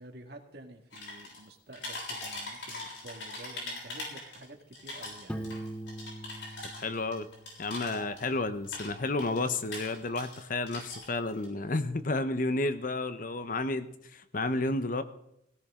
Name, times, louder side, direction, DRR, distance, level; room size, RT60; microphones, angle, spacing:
voice 1, 0.0-5.5, right 1 dB, 60° right, 5 dB, 1.9 m, -50 dB
sound 1, 0.9-1.4 1.7-4.4 4.7-8.4 8.6-10.4 10.7-11.5, left 2 dB, 85° left, 7.0 m, -41 dB
Piano, 5.3-8.0, right 1 dB, 5° left, 0.8 m, -42 dB
voice 2, 6.7-7.3 7.6-15.0, left 2 dB, 45° left, 11 dB, 0.8 m, -31 dB
18.0 x 16.5 x 3.7 m, 0.77 s
head